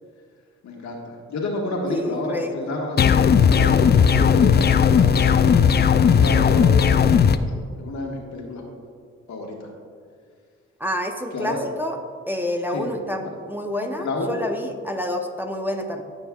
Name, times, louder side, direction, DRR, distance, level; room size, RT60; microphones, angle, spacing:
voice 1, 0.6-7.4 7.7-8.6 9.3-9.7 11.3-11.6 12.7-12.9 14.0-14.3, left 2 dB, 70° left, -1 dB, 1.6 m, -30 dB
voice 2, 1.9-2.6 10.8-12.0 12.3-16.0, left 1 dB, 5° right, 2 dB, 0.7 m, -28 dB
sound 1, 3.0-7.4, left 7 dB, 35° left, 0.4 m, -16 dB
15.5 x 5.3 x 2.4 m, 2.1 s
cardioid pair, 70°, 29 cm